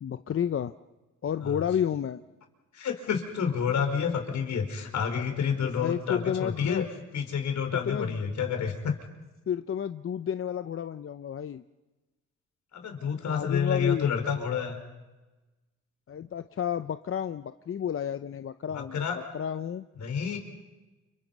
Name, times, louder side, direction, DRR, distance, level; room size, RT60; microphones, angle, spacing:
voice 1, 0.0-0.7 1.2-2.2 5.6-6.9 7.7-8.2 9.5-11.6 13.2-14.1 16.1-19.1 19.3-19.9, left 9 dB, 45° left, 11 dB, 0.8 m, -31 dB
voice 2, 2.7-6.9 7.1-9.0 12.7-14.8 18.7-19.2 20.0-20.4, left 7 dB, 70° left, 5 dB, 4.9 m, -29 dB
29.5 x 26.5 x 5.5 m, 1.1 s
cardioid pair, 85°, 29 cm